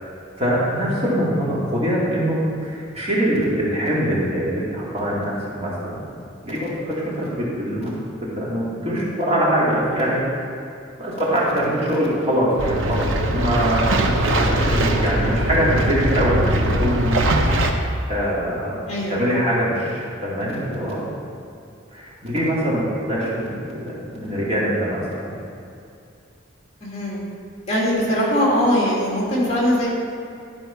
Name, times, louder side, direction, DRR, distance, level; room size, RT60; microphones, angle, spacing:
voice 1, 0.4-5.3 5.6-6.1 6.4-7.9 8.2-10.5 11.0-17.6 18.1-18.8 19.1-21.1 21.9-25.4, equal, 30° right, -7 dB, 2.3 m, -23 dB
sound 1, 12.6-17.7, right 1 dB, 85° right, 0.9 m, -21 dB
voice 2, 18.9-19.2 26.8-27.2 27.7-29.9, equal, 35° left, -5 dB, 2.5 m, -21 dB
12.5 x 5.2 x 5.7 m, 2.5 s
head